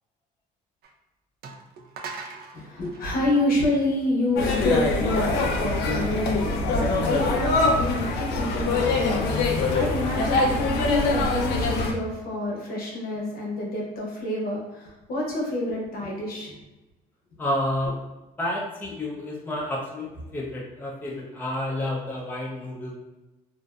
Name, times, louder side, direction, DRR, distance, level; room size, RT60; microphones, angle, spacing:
sound 1, 0.8-0.9 1.4-4.2, right 4 dB, 65° right, 0.4 m, -41 dB
voice 1, 2.5-16.6, left 1 dB, 60° left, -2 dB, 0.8 m, -28 dB
sound 2, 4.4-11.9, left 3 dB, 85° left, 0.4 m, -24 dB
voice 2, 17.4-18.1 18.4-22.9, left 1 dB, 10° left, -4 dB, 0.5 m, -30 dB
2.5 x 2.1 x 2.3 m, 1.1 s
cardioid pair, 110°, 17 cm